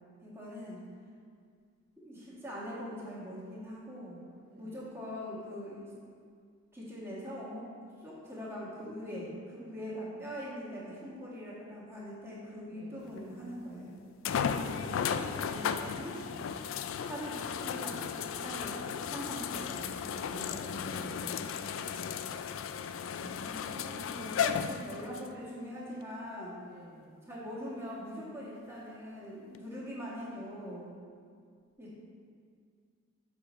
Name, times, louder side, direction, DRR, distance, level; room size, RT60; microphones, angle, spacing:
voice 1, 0.2-0.8 2.0-4.2 4.6-5.9 6.7-7.6 8.0-14.0 14.6-16.2 17.0-21.7 23.1-26.6 27.3-30.9 31.8-31.9, equal, 15° right, -8 dB, 1.7 m, -42 dB
voice 2, 4.4-5.0 12.7-13.2 21.8-22.4 26.6-27.3, right 1 dB, 55° right, -3 dB, 0.7 m, -55 dB
sound 1, 13.2-13.3 14.2-25.3 26.0-26.1 29.5-29.6, left 7 dB, 75° left, 0.3 m, -35 dB
7.0 x 4.8 x 5.2 m, 2.1 s
head